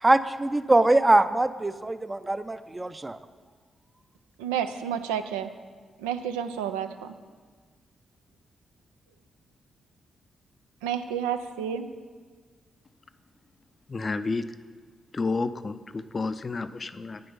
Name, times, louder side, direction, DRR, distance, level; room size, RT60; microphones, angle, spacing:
voice 1, 0.0-3.2, right 2 dB, 25° right, 12 dB, 0.5 m, -23 dB
voice 2, 4.4-5.5 6.0-7.1 10.8-11.9, right 9 dB, 90° right, 9 dB, 0.4 m, -30 dB
voice 3, 13.9-14.5 15.1-17.2, left 3 dB, 40° left, 12 dB, 0.5 m, -30 dB
9.4 x 7.6 x 5.6 m, 1.5 s
hypercardioid pair, 40°, 0 cm